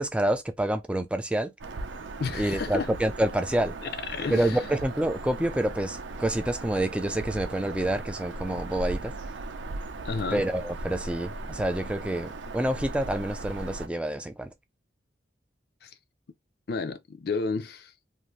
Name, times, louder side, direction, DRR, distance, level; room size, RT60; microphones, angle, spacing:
voice 1, 0.0-1.5 2.3-3.8 4.3-9.1 10.3-14.5, right 1 dB, 5° right, 0.3 m, -28 dB
Bird vocalization bird call bird song, 1.6-13.9, right 2 dB, 85° right, 0.6 m, -38 dB
voice 2, 2.2-2.9 3.8-4.6 10.0-10.4 15.8-15.9 16.7-18.1, left 4 dB, 55° left, 0.5 m, -32 dB
2.6 x 2.6 x 3.1 m
head